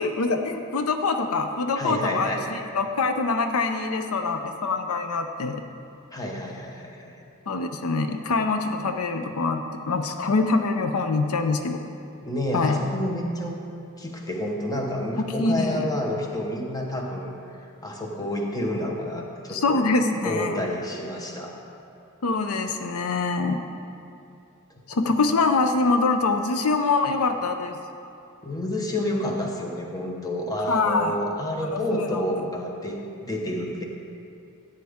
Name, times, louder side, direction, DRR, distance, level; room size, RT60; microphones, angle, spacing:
voice 1, 0.0-5.6 7.5-11.8 12.5-12.8 15.2-15.9 19.5-20.6 22.2-23.6 24.9-27.8 30.7-31.2 31.6-32.2, left 3 dB, 80° left, 6 dB, 0.6 m, -24 dB
voice 2, 1.7-2.5 6.1-7.1 12.2-13.6 14.0-17.3 17.8-19.9 20.2-21.6 28.4-33.0 33.2-33.8, left 1 dB, 15° left, 0 dB, 1.1 m, -29 dB
13.5 x 9.0 x 3.6 m, 2.6 s
head